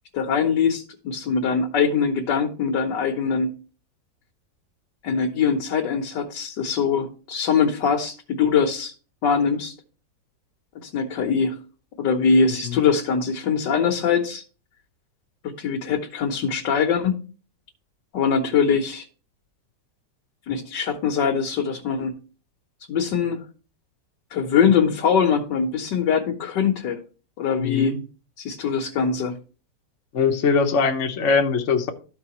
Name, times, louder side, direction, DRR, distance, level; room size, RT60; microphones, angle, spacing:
voice 1, 0.1-3.5 5.0-8.9 9.2-9.7 10.7-11.6 12.0-14.4 15.4-17.2 18.1-19.0 20.5-22.2 22.9-23.4 24.3-27.0 27.4-28.0 28.4-29.3, left 6 dB, 75° left, 1.6 m, -22 dB
voice 2, 27.5-28.0 30.1-31.9, left 5 dB, 50° left, 1.0 m, -22 dB
13.5 x 4.7 x 3.0 m
omnidirectional pair, 1.9 m